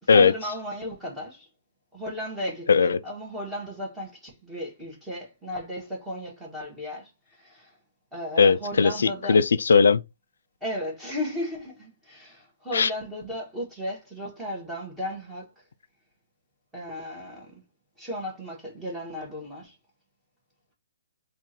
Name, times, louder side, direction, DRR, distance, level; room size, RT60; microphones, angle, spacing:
voice 1, 0.0-1.5 1.9-7.1 7.4-7.7 8.1-9.4 10.6-15.5 16.7-17.6 18.0-19.7, left 1 dB, 5° right, 1.4 m, -35 dB
voice 2, 8.4-10.0 12.7-12.9, left 5 dB, 85° left, 0.4 m, -18 dB
3.6 x 2.5 x 4.3 m
hypercardioid pair, 165°, 0 cm